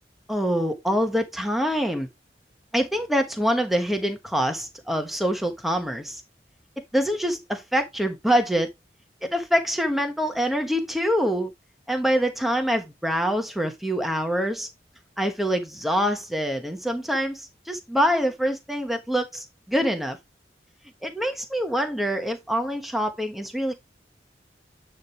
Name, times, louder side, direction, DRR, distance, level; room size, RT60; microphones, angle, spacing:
voice 1, 0.3-2.1 2.7-6.2 6.9-8.7 9.2-11.5 11.9-14.7 15.2-20.2 21.0-23.7, equal, ahead, 1.1 m, -25 dB
9.5 x 3.2 x 4.6 m
head